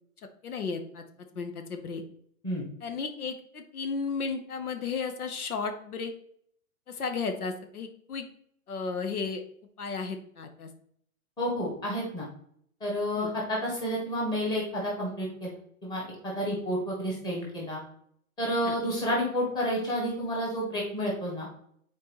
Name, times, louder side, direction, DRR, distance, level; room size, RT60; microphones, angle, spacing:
voice 1, 0.4-1.0 1.3-2.0 2.8-6.1 6.9-8.2 8.7-9.4 9.8-10.7 13.1-13.3 18.6-18.8, left 5 dB, 90° left, 6 dB, 1.1 m, -34 dB
voice 2, 11.4-12.3 12.8-15.5 15.8-17.8 18.4-21.5, equal, 10° left, -3 dB, 1.5 m, -30 dB
7.5 x 4.4 x 3.1 m, 0.67 s
hypercardioid pair, 155°, 43 cm